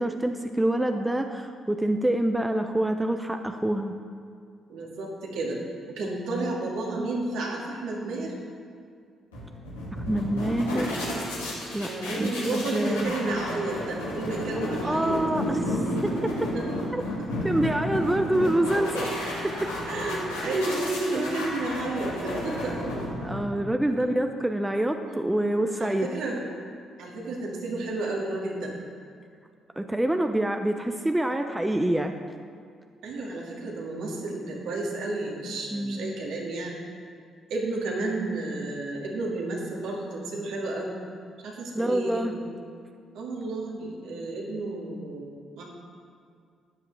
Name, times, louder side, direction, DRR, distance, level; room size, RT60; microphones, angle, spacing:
voice 1, 0.0-4.0 10.1-11.0 11.7-13.1 14.8-16.1 16.9-17.0 17.4-19.1 19.4-19.7 20.4-20.5 21.1-21.3 23.2-26.1 29.8-32.1 35.7-36.2 41.7-42.3, right 1 dB, 10° right, 6 dB, 0.7 m, -26 dB
voice 2, 4.7-5.6 5.9-8.3 11.9-15.1 16.5-16.6 19.8-22.9 25.0-25.1 25.8-26.4 27.0-28.7 33.0-36.8 37.5-41.0 41.4-42.5 43.1-45.3 45.6-45.7, right 2 dB, 70° right, -3 dB, 2.2 m, -31 dB
sound 1, 9.3-23.7, left 1 dB, 90° left, 2.2 m, -32 dB
13.0 x 9.5 x 3.4 m, 2.3 s
hypercardioid pair, 45°, 0 cm